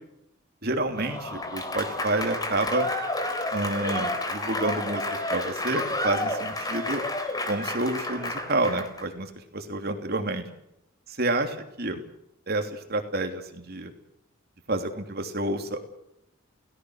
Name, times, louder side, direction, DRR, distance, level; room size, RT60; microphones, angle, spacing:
voice 1, 0.6-2.9 3.5-7.0 7.5-9.3 9.7-10.4 11.2-12.0 12.5-13.9 14.7-15.8, right 2 dB, 50° right, 5 dB, 3.1 m, -29 dB
Applause / Crowd, 0.9-9.0, left 1 dB, 20° left, 3.4 m, -31 dB
28.5 x 18.0 x 6.5 m, 0.81 s
head